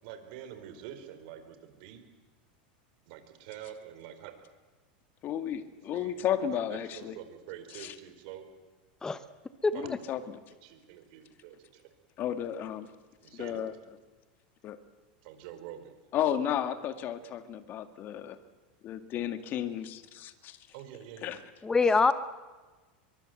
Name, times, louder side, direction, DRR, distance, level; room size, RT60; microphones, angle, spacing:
voice 1, 0.0-2.0 3.0-4.3 5.9-6.2 6.5-8.5 9.7-9.9 10.6-11.9 13.2-13.6 15.2-16.0 20.7-21.3, right 10 dB, 60° right, 8 dB, 4.3 m, -46 dB
voice 2, 5.2-7.2 7.7-7.9 9.7-10.4 12.2-12.9 13.4-13.7 14.6-14.8 16.1-18.4 18.8-20.6 21.2-21.4, left 10 dB, 40° left, 10 dB, 2.0 m, -33 dB
voice 3, 9.6-10.0 21.6-22.1, left 4 dB, 15° left, 13 dB, 1.1 m, -24 dB
23.5 x 23.5 x 7.8 m, 1.3 s
supercardioid pair, 125°, 5 cm